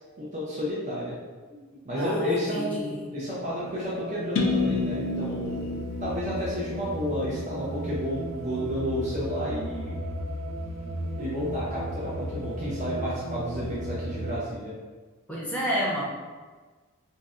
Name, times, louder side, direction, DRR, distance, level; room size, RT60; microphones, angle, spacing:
voice 1, 0.2-1.2 1.5-1.6 1.8-5.6 6.0-10.0 11.2-14.7, equal, 35° right, -7 dB, 0.5 m, -31 dB
voice 2, 2.0-3.0 15.3-16.0, equal, 5° left, -5 dB, 0.6 m, -30 dB
sound 1, 3.4-14.4, right 1 dB, 90° right, 0.4 m, -35 dB
sound 2, 4.4-8.2, left 3 dB, 65° left, 0.4 m, -30 dB
4.0 x 2.0 x 2.4 m, 1.4 s
head